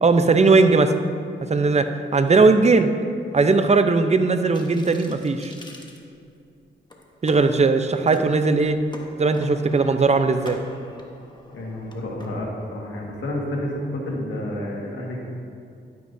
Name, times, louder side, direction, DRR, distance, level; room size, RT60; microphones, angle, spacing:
voice 1, 0.0-0.9 1.5-2.9 3.3-5.5 7.2-8.8 9.2-10.6, right 3 dB, 35° right, 8 dB, 0.7 m, -18 dB
sound 1, 4.5-6.5 6.9-7.4 7.9-8.2 8.6-12.3, left 1 dB, 20° left, 1.3 m, -44 dB
voice 2, 11.5-15.3, left 1 dB, 80° left, -2 dB, 1.8 m, -30 dB
11.5 x 9.4 x 2.7 m, 2.5 s
cardioid pair, 65°, 20 cm